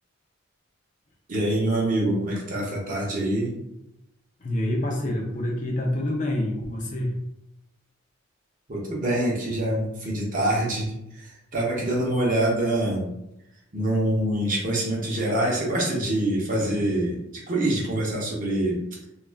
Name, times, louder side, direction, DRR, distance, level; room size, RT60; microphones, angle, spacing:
voice 1, 1.3-3.6 8.7-13.1 13.7-18.8, right 1 dB, 40° right, -3 dB, 0.7 m, -25 dB
voice 2, 4.4-7.1 16.6-16.7, left 1 dB, 35° left, 0 dB, 0.5 m, -27 dB
2.3 x 2.3 x 3.3 m, 0.85 s
head